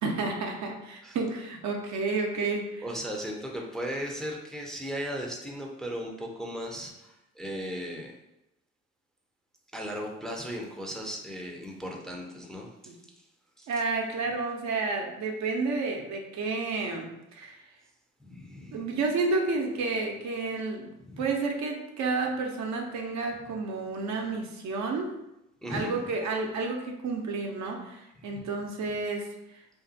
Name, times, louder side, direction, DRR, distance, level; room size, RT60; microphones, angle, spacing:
voice 1, 0.0-2.8 12.9-13.0 13.7-17.6 18.7-20.9 21.2-25.1 25.7-29.3, right 3 dB, 60° right, 1 dB, 0.6 m, -30 dB
voice 2, 2.8-8.1 9.7-12.9 13.6-13.7 18.2-18.9 21.1-21.2 25.6-26.0 28.2-28.5, equal, ahead, -1 dB, 0.5 m, -37 dB
2.5 x 2.3 x 2.6 m, 0.87 s
hypercardioid pair, 50°, 32 cm